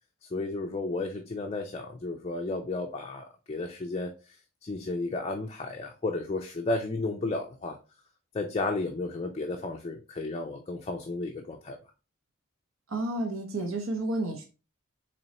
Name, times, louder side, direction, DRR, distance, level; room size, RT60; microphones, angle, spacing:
voice 1, 0.2-4.4 4.6-7.8 8.3-11.8, left 2 dB, 30° left, 3 dB, 0.4 m, -33 dB
voice 2, 12.9-14.4, right 2 dB, 90° right, 3 dB, 0.8 m, -31 dB
4.1 x 3.0 x 2.9 m, 0.31 s
head